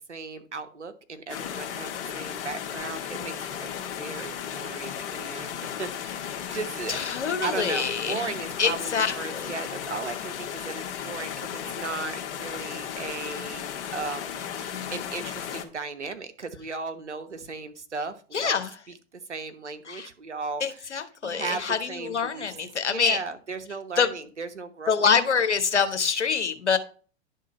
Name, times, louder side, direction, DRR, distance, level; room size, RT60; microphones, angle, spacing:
voice 1, 0.1-7.0 7.4-18.6 18.9-21.0 21.2-22.6 22.9-25.1, right 4 dB, 90° right, 1.1 m, -36 dB
sound 1, 1.3-15.6, left 9 dB, 55° left, 1.6 m, -35 dB
voice 2, 6.9-8.3 8.6-9.5 14.7-14.9 18.3-18.7 19.9-20.1 20.6-23.2 24.0-24.1 24.9-26.8, left 6 dB, 85° left, 1.1 m, -26 dB
11.0 x 3.8 x 5.4 m
figure-of-eight pair, 100°, 34 cm